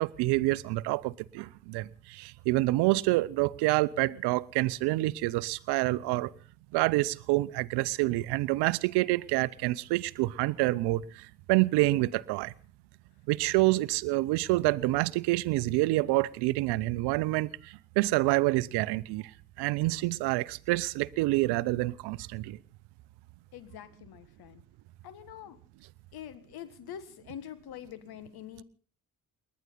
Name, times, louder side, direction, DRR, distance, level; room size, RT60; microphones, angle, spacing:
voice 1, 0.0-6.3 6.7-12.5 13.3-19.2 19.6-22.6, right 19 dB, 65° right, 0.8 m, -27 dB
voice 2, 23.5-24.6 25.0-25.6 26.1-28.6, left 10 dB, 60° left, 1.8 m, -45 dB
29.0 x 11.5 x 4.0 m
figure-of-eight pair, 40°, 43 cm